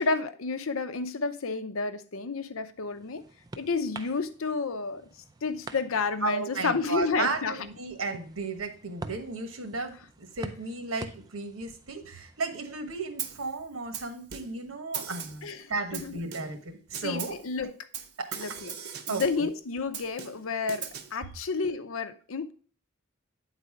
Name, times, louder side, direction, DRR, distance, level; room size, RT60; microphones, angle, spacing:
voice 1, 0.0-3.2 3.6-5.0 5.4-7.6 15.4-16.2 17.0-17.7 18.4-18.8 19.1-22.5, left 4 dB, 80° left, 0.7 m, -31 dB
sound 1, 2.4-13.5, right 3 dB, 20° right, 0.4 m, -48 dB
voice 2, 6.2-9.9 10.3-17.4 18.2-18.4 19.1-19.5, right 3 dB, 85° right, 1.3 m, -34 dB
Snare drum, 13.2-13.5 13.9-14.6 14.9-15.5 15.9-16.6 16.9-17.5 17.9-19.5 19.9-21.2, right 8 dB, 50° right, 0.7 m, -39 dB
8.9 x 4.1 x 4.8 m
head